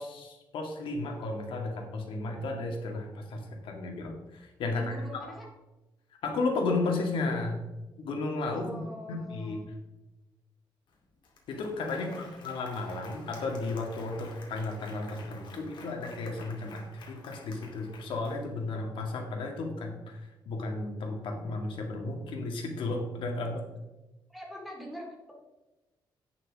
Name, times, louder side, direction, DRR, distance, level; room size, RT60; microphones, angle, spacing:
voice 1, 0.0-4.9 6.2-7.6 8.0-8.8 9.1-9.6 11.5-20.2 20.5-23.6, left 3 dB, 80° left, 2 dB, 2.0 m, -33 dB
voice 2, 4.7-5.5 8.5-9.6 12.0-12.4 24.3-25.3, equal, ahead, -2 dB, 2.3 m, -44 dB
Applause, 10.9-11.0 11.2-18.8, left 3 dB, 65° left, 2.3 m, -51 dB
11.0 x 9.3 x 3.6 m, 1.1 s
wide cardioid pair, 155°, 9 cm